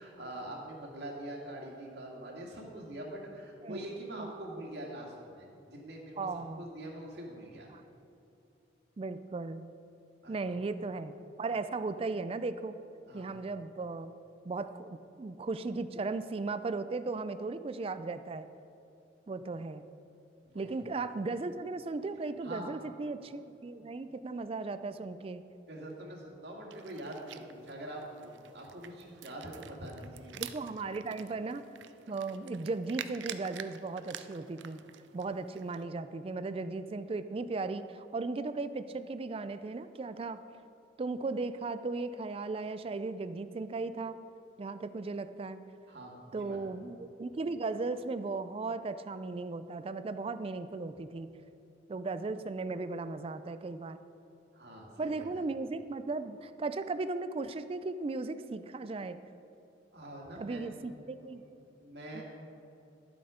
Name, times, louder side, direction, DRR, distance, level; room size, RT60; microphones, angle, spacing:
voice 1, 0.0-7.7 10.2-10.6 13.1-13.4 20.5-20.8 22.4-22.7 23.8-23.9 25.7-30.4 45.9-46.7 54.5-55.4 59.9-60.6 61.3-62.2, right 1 dB, 65° right, -2 dB, 2.1 m, -44 dB
voice 2, 3.6-4.3 6.2-6.6 7.7-7.8 9.0-9.7 10.3-11.1 11.4-12.8 13.1-14.1 14.4-18.5 19.3-19.8 20.5-25.4 30.4-31.6 32.1-34.8 35.1-40.4 41.0-44.2 44.6-45.6 46.3-51.3 51.9-54.0 55.0-59.2 60.4-61.4 62.1-62.2, right 3 dB, 30° right, 11 dB, 0.4 m, -36 dB
sound 1, 26.7-35.8, right 9 dB, 90° right, 0.5 m, -48 dB
11.5 x 7.8 x 5.0 m, 2.7 s
head